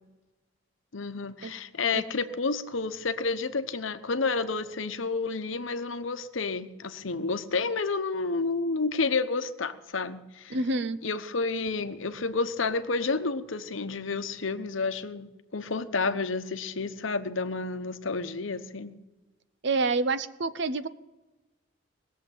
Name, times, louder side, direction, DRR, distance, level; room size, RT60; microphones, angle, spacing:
voice 1, 0.9-10.6 11.0-19.0, left 4 dB, 75° left, 10 dB, 1.0 m, -30 dB
voice 2, 10.5-11.0 19.6-20.9, right 3 dB, 60° right, 14 dB, 0.7 m, -27 dB
19.5 x 7.5 x 9.1 m, 1.1 s
head